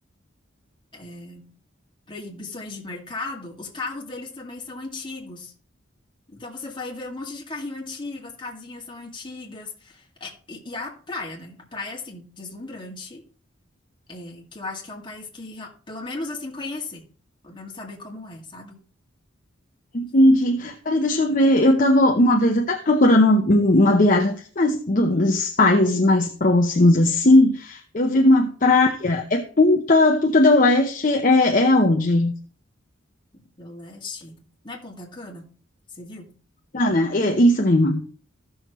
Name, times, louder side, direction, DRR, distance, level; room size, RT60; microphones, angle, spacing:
voice 1, 0.9-1.5 2.1-5.5 6.3-13.2 14.1-17.0 17.4-18.8 33.6-35.5 35.9-36.3, left 3 dB, 25° left, -1 dB, 2.1 m, -36 dB
voice 2, 19.9-32.3 36.7-38.1, left 1 dB, 40° left, 3 dB, 0.8 m, -18 dB
15.0 x 6.4 x 3.0 m, 0.41 s
head